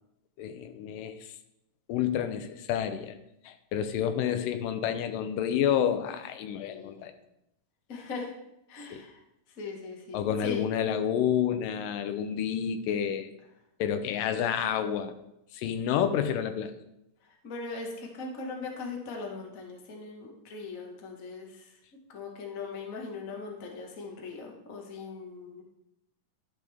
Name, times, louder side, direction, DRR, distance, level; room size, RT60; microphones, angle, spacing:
voice 1, 0.4-1.3 1.9-3.2 3.5-7.1 8.9-9.0 10.1-13.3 13.8-15.1 15.5-16.7, left 9 dB, 85° left, 9 dB, 2.3 m, -29 dB
voice 2, 6.6-7.1 7.9-8.3 8.7-9.2 9.6-10.7 17.2-21.7 22.1-25.6, left 4 dB, 60° left, 1 dB, 0.8 m, -40 dB
12.0 x 6.6 x 3.5 m, 0.84 s
omnidirectional pair, 3.8 m